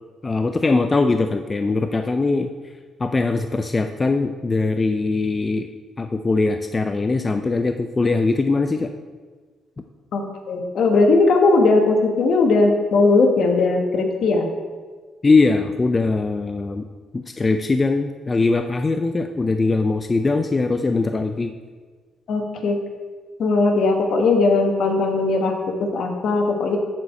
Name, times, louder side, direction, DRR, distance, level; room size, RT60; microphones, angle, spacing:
voice 1, 0.2-2.5 3.0-5.7 6.0-8.9 15.2-16.8 17.1-21.5, left 3 dB, 25° left, 6 dB, 0.4 m, -21 dB
voice 2, 10.1-14.5 22.3-22.8 23.4-25.5 25.8-26.8, left 3 dB, 65° left, 3 dB, 1.4 m, -18 dB
13.5 x 4.7 x 4.4 m, 1.5 s
cardioid pair, 90°, 0 cm